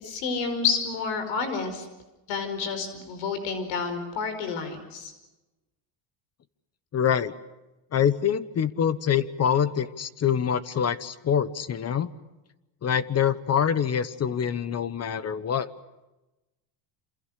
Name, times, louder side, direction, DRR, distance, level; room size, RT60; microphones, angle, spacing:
voice 1, 0.0-1.9 2.3-5.1, left 5 dB, 85° left, 9 dB, 5.2 m, -29 dB
voice 2, 6.9-7.3 7.9-12.1 12.8-15.7, left 8 dB, 35° left, 15 dB, 1.1 m, -25 dB
27.5 x 27.5 x 6.6 m, 1.0 s
cardioid pair, 135°, 46 cm